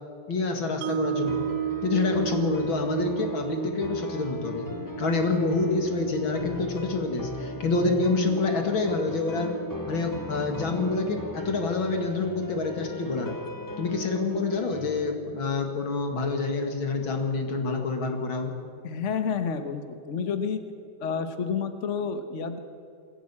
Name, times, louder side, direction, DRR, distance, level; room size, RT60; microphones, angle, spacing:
voice 1, 0.3-1.4 1.8-4.7 5.0-9.6 9.9-13.4 13.8-18.5, left 3 dB, 65° left, 4 dB, 2.9 m, -27 dB
Mallet percussion, 0.8-7.0, right 11 dB, 85° right, 0.8 m, -34 dB
sound 1, 1.2-15.2, left 1 dB, 25° left, 0.4 m, -38 dB
voice 2, 18.8-20.6 21.0-22.6, left 6 dB, 40° left, 8 dB, 1.1 m, -29 dB
22.0 x 16.5 x 8.6 m, 2.5 s
omnidirectional pair, 2.4 m